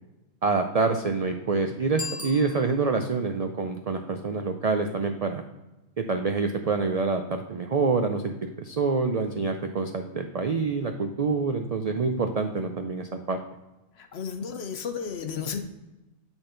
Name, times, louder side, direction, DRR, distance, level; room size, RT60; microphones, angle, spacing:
voice 1, 0.4-5.4 6.0-13.4, right 4 dB, 60° right, 5 dB, 0.4 m, -26 dB
Bicycle bell, 1.9-3.1, left 4 dB, 15° left, 0.7 m, -38 dB
voice 2, 14.0-15.6, left 6 dB, 65° left, 7 dB, 1.0 m, -33 dB
8.9 x 3.9 x 3.8 m, 1.0 s
omnidirectional pair, 1.2 m